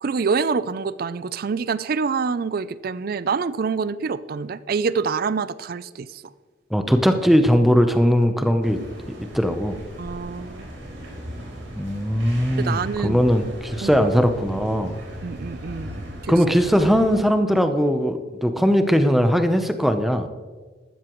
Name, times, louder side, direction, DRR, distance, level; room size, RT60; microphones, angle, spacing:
voice 1, 0.0-6.2 10.0-10.6 12.6-13.2 13.8-14.0 15.2-16.4, right 5 dB, 50° right, 16 dB, 0.4 m, -26 dB
voice 2, 6.7-8.8 9.1-9.8 11.7-14.9 16.3-20.3, equal, ahead, 7 dB, 0.7 m, -19 dB
sound 1, 8.6-17.2, equal, 85° right, 3.8 m, -37 dB
15.0 x 12.5 x 3.1 m, 1.4 s
head